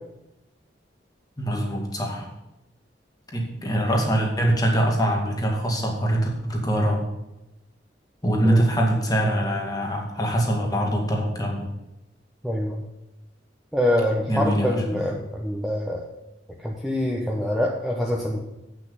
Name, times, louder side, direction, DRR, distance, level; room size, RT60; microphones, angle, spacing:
voice 1, 1.4-2.3 3.3-7.1 8.2-11.7 14.3-15.1, right 1 dB, 20° left, 0 dB, 2.1 m, -23 dB
voice 2, 12.4-12.8 13.7-16.0 16.6-18.4, left 1 dB, ahead, -2 dB, 1.0 m, -25 dB
8.6 x 6.1 x 7.8 m, 0.93 s
head